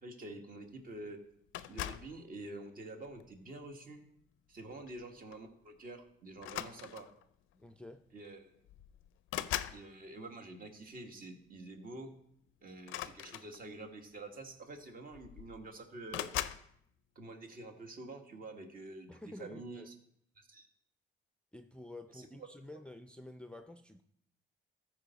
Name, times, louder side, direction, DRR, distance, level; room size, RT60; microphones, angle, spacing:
voice 1, 0.0-1.2 1.7-4.0 4.5-7.1 8.1-8.5 9.7-12.1 12.6-16.3 17.1-19.1 19.4-19.9 20.4-20.7 22.1-22.3 22.7-22.8, right 2 dB, 45° right, 1.5 m, -47 dB
sound 1, 1.5-2.2 3.0-3.4 4.9-5.0 5.3-5.5 6.4-7.2 8.3-8.4 8.7-9.8 12.8-13.9 14.8-14.9 15.1-15.6 16.1-16.7, left 13 dB, 90° left, 0.4 m, -40 dB
voice 2, 7.5-8.0 19.1-19.9 21.5-24.0, left 1 dB, 5° left, 0.5 m, -50 dB
14.0 x 4.7 x 4.0 m
cardioid pair, 90°, 20 cm